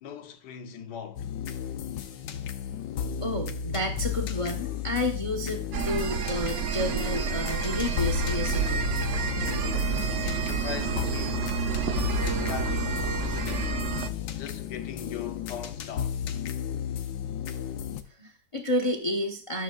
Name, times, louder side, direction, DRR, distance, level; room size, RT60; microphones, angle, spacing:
voice 1, 0.0-1.3 10.2-11.6 12.2-13.9 14.4-16.2, left 7 dB, 70° left, 1.4 m, -40 dB
sound 1, 1.2-18.0, left 9 dB, 90° left, 1.5 m, -33 dB
voice 2, 3.2-8.8 18.1-19.6, left 1 dB, 25° left, 0.8 m, -30 dB
sound 2, 5.7-14.1, right 7 dB, 70° right, 0.7 m, -29 dB
12.5 x 6.9 x 2.4 m
omnidirectional pair, 1.9 m